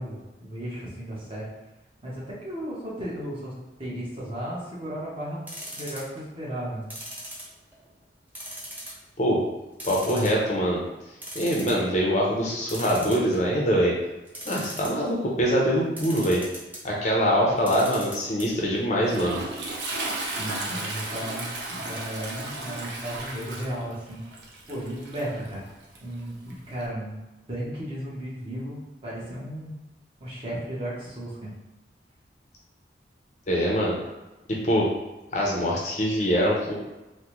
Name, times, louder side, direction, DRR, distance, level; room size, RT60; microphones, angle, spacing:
voice 1, 0.0-1.5 2.0-3.5 3.8-5.5 5.7-6.9 20.4-24.4 24.7-25.6 26.0-27.2 27.5-29.7 30.2-31.5, right 1 dB, 30° right, -7 dB, 0.9 m, -35 dB
sound 1, 5.5-6.2 6.9-7.9 8.3-9.0 9.4-9.5 9.8-10.6 11.0-11.1 11.2-11.8 12.7-13.6 14.3-15.1 16.0-16.8 17.6-18.5 18.8-18.9 19.1-19.2, equal, 10° right, 0.5 m, -38 dB
voice 2, 9.8-10.8 11.3-13.9 14.5-16.4 16.8-19.4 33.5-34.0 34.5-34.9 35.3-36.7, equal, 40° left, -3 dB, 0.5 m, -23 dB
Toilet flush, 18.6-26.9, right 2 dB, 80° right, 0.6 m, -35 dB
3.5 x 2.1 x 3.0 m, 1.0 s
head